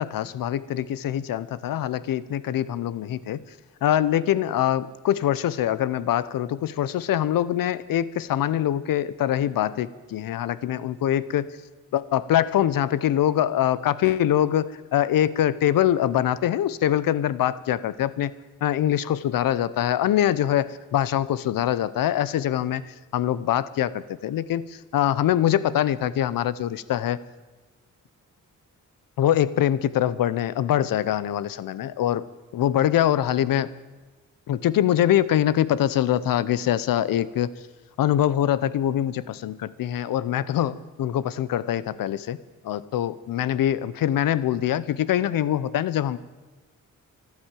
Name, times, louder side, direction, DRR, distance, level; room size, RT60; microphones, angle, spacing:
voice 1, 0.0-3.4 3.8-11.5 11.9-18.3 18.6-27.2 29.2-32.3 32.5-33.7 34.5-37.5 38.0-42.4 42.6-46.2, left 11 dB, 90° left, 17 dB, 0.7 m, -24 dB
13.0 x 12.0 x 9.1 m, 1.2 s
cardioid pair, 75°, 33 cm